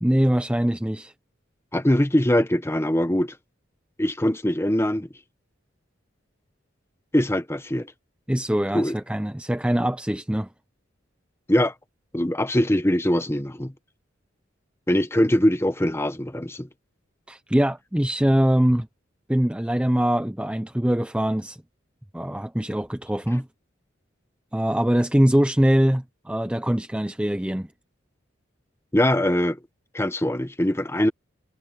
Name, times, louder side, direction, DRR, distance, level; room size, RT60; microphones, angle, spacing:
voice 1, 0.0-1.1 8.3-10.5 17.3-18.9 19.3-21.6 22.1-23.5 24.5-27.7, equal, 5° right, 0.5 m, -22 dB
voice 2, 1.7-3.4 4.0-5.1 7.1-7.9 8.7-8.9 11.5-11.7 12.1-13.7 14.9-16.7 28.9-29.6 29.9-31.1, left 1 dB, 15° left, 1.1 m, -22 dB
head